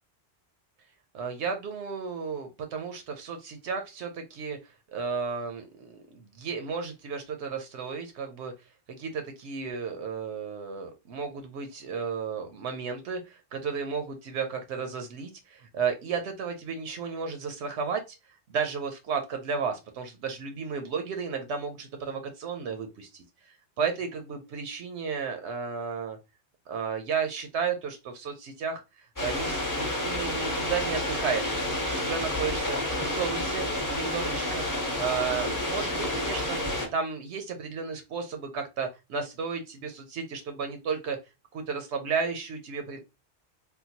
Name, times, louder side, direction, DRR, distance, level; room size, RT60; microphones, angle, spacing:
voice 1, 1.1-8.5 9.0-18.2 18.5-26.2 26.7-34.6 35.0-41.2 41.5-43.0, right 5 dB, 80° right, 6 dB, 0.9 m, -33 dB
sound 1, 29.2-36.9, left 1 dB, 20° left, 0.8 m, -30 dB
3.7 x 2.2 x 2.7 m, 0.26 s
omnidirectional pair, 1.2 m